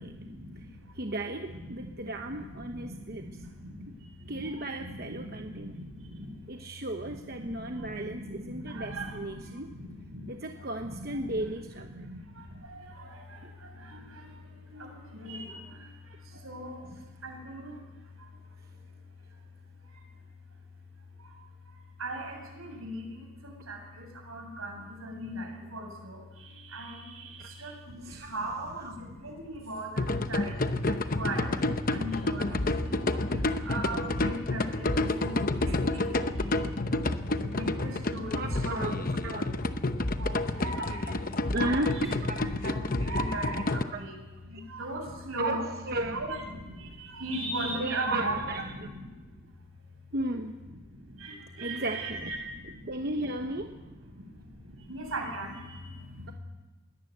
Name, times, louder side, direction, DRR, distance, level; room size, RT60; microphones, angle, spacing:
voice 1, 0.0-0.9 1.6-4.5 4.8-6.4 7.0-10.3 10.8-11.5 11.9-17.9 18.2-18.3 19.9-20.0 21.2-21.3 21.7-31.6 31.9-39.1 39.4-41.8 42.6-44.2 44.4-45.7 46.1-48.3 48.7-49.5 50.9-52.9 53.8-56.3, right 1 dB, 80° right, 1 dB, 7.7 m, -39 dB
voice 2, 0.9-3.4 3.9-4.0 4.3-5.7 6.5-9.7 10.3-12.1 13.4-13.5 27.4-27.5 28.0-28.3 28.8-28.9 30.9-31.0 33.3-33.4 35.3-35.9 36.2-36.4 38.4-39.5 40.8-41.2 41.5-42.4 43.9-44.0 44.5-44.6 45.4-46.3 47.8-48.7 50.1-50.5 51.6-52.3 52.9-53.8, right 1 dB, 45° right, 4 dB, 1.0 m, -35 dB
sound 1, 30.0-43.8, left 2 dB, 40° left, 0.9 m, -29 dB
22.0 x 18.0 x 8.1 m, 1.2 s
head